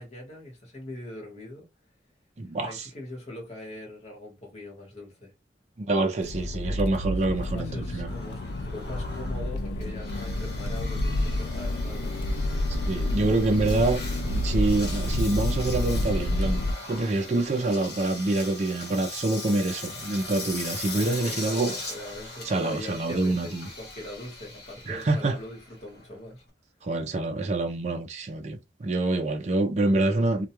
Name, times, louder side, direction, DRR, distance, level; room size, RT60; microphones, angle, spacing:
voice 1, 0.0-1.7 2.6-5.3 7.2-12.2 21.0-26.4, left 1 dB, 35° left, 1.1 m, -42 dB
voice 2, 2.4-2.9 5.8-8.1 12.9-16.6 16.9-21.7 22.4-23.7 24.9-25.4 26.8-30.5, right 2 dB, 40° right, 0.4 m, -26 dB
Accelerating revving vroom, 6.2-16.7, left 1 dB, 75° left, 0.3 m, -29 dB
Engine, 8.1-26.5, left 2 dB, 60° left, 1.0 m, -40 dB
2.2 x 2.2 x 2.9 m
head